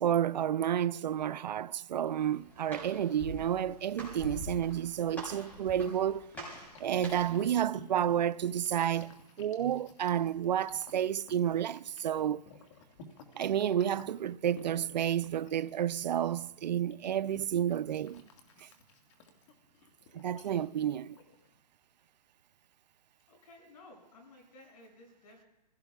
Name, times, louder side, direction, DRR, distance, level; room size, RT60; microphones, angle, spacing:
voice 1, 0.0-6.3 6.8-12.4 13.3-18.3 18.6-18.7 20.1-21.2, right 10 dB, 85° right, 0.5 m, -31 dB
Walk footsteps, 2.1-7.4, equal, 10° left, 5.2 m, -45 dB
sound 1, 5.8-21.6, left 3 dB, 45° left, 1.8 m, -56 dB
voice 2, 23.3-25.5, left 2 dB, 60° left, 6.7 m, -55 dB
28.0 x 16.5 x 2.4 m
hypercardioid pair, 150°, 21 cm